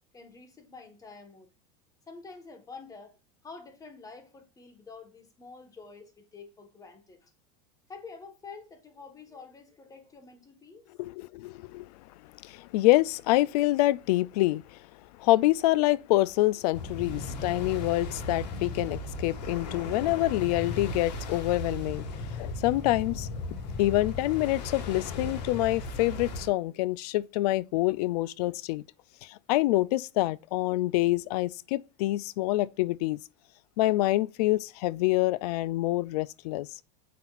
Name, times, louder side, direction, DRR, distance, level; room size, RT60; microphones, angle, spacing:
voice 1, 0.1-1.5 2.1-3.2 3.4-7.3 7.9-10.8, left 4 dB, 15° left, 1.5 m, -48 dB
voice 2, 11.0-11.9 12.4-14.8 15.2-23.3 23.8-28.8 29.2-33.2 33.8-36.7, left 17 dB, 70° left, 0.4 m, -26 dB
sound 1, 16.7-26.5, left 2 dB, 90° left, 1.8 m, -36 dB
7.5 x 5.7 x 2.5 m
supercardioid pair, 135°, 21 cm